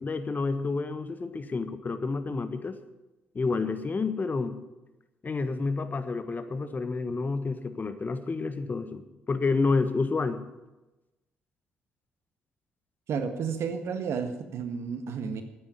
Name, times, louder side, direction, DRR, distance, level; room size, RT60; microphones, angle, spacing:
voice 1, 0.0-2.8 3.3-4.6 5.2-10.4, left 4 dB, 35° left, 10 dB, 1.4 m, -29 dB
voice 2, 13.1-15.4, right 6 dB, 60° right, 8 dB, 1.6 m, -32 dB
11.5 x 9.7 x 9.5 m, 1.0 s
hypercardioid pair, 45°, 5 cm